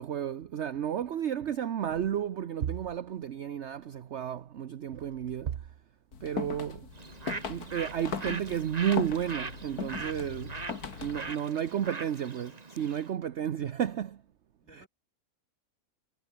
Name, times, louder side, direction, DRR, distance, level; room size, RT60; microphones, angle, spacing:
voice 1, 0.0-5.7 6.2-6.9 7.5-10.6 11.0-14.2 14.7-14.9, right 9 dB, 55° right, 1.0 m, -32 dB
sound 1, 6.1-11.3, left 6 dB, 85° left, 2.5 m, -39 dB
Bird, 6.9-13.1, right 3 dB, 25° right, 1.5 m, -41 dB
voice 2, 10.9-11.9 14.6-14.9, equal, 5° left, 6.0 m, -60 dB
omnidirectional pair, 1.6 m